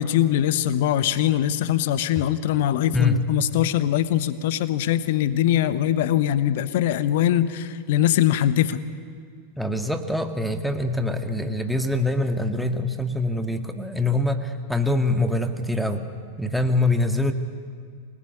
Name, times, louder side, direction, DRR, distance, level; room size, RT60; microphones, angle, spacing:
voice 1, 0.0-8.8, left 11 dB, 55° left, 15 dB, 1.2 m, -22 dB
voice 2, 9.5-16.1 16.4-17.3, left 2 dB, ahead, 6 dB, 1.9 m, -24 dB
27.0 x 19.5 x 9.8 m, 2.1 s
figure-of-eight pair, 90°, 0 cm